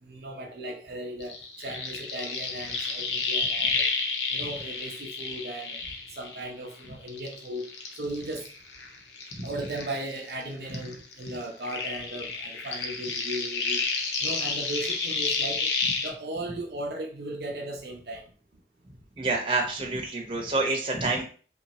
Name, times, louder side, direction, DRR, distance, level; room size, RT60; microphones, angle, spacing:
voice 1, 0.0-3.9 4.3-5.8 6.1-7.7 7.9-8.5 9.4-13.8 14.2-15.7 16.0-18.3, right 1 dB, 60° right, 0 dB, 0.7 m, -36 dB
sound 1, 1.2-6.7 7.1-10.4 10.7-16.1, left 4 dB, 75° left, 0.8 m, -31 dB
voice 2, 19.2-21.2, right 3 dB, 30° right, -1 dB, 0.9 m, -27 dB
3.2 x 3.0 x 4.1 m, 0.40 s
head